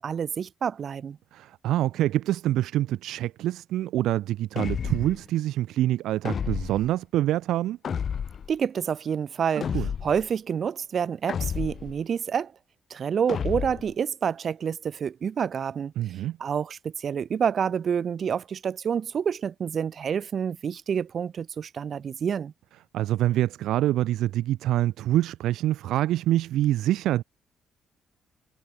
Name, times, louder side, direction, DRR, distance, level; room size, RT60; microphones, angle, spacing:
voice 1, 0.0-1.2 8.5-9.7 10.0-12.5 12.9-15.9 16.4-22.5, right 7 dB, 50° right, 4.6 m, -28 dB
voice 2, 1.3-7.8 9.7-9.9 16.0-16.4 22.9-27.2, right 14 dB, 85° right, 2.4 m, -25 dB
sound 1, 4.6-5.2 6.2-6.9 7.8-8.5 9.6-10.2 11.3-12.0 13.3-13.9, left 7 dB, 50° left, 6.7 m, -31 dB
cardioid pair, 90°, 0 cm